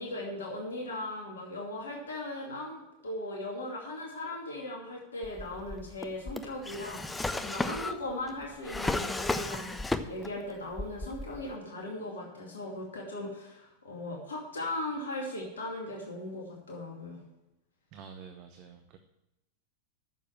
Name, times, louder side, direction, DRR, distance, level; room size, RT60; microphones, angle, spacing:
voice 1, 0.0-7.0 7.4-17.2, left 1 dB, 70° left, -1 dB, 2.5 m, -38 dB
Drawer open or close, 5.2-10.4 10.7-11.5, left 2 dB, 10° left, 0.7 m, -34 dB
voice 2, 17.9-19.0, right 6 dB, 40° right, 6 dB, 0.8 m, -48 dB
9.0 x 7.0 x 7.6 m, 0.92 s
figure-of-eight pair, 90°, 0 cm